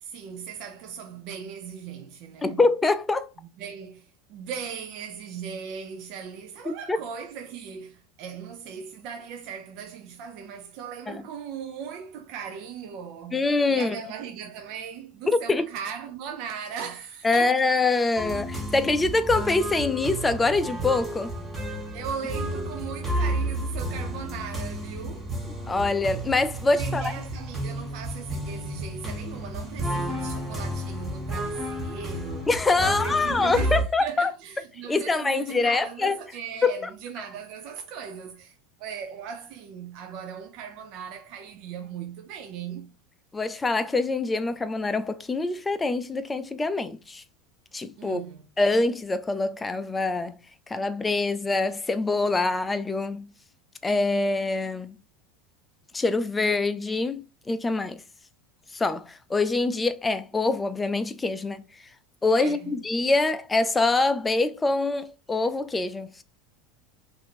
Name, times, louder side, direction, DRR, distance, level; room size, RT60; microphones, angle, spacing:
voice 1, 0.0-2.6 3.6-13.4 13.7-17.6 21.9-25.3 26.8-32.5 32.8-42.9 48.0-48.4 62.4-62.8, right 7 dB, 55° right, 0.5 m, -38 dB
voice 2, 2.4-3.3 6.7-7.0 11.1-11.2 13.3-14.0 15.3-15.6 17.2-21.3 25.7-27.1 32.5-34.3 34.9-36.2 36.6-36.9 43.3-47.2 47.7-48.2 48.6-50.4 50.7-53.3 53.8-54.9 55.9-58.0 58.7-61.6 62.2-66.2, left 3 dB, 15° left, 0.4 m, -25 dB
jazz music loop, 18.2-33.8, right 1 dB, 15° right, 1.1 m, -31 dB
2.9 x 2.6 x 4.1 m
supercardioid pair, 110°, 0 cm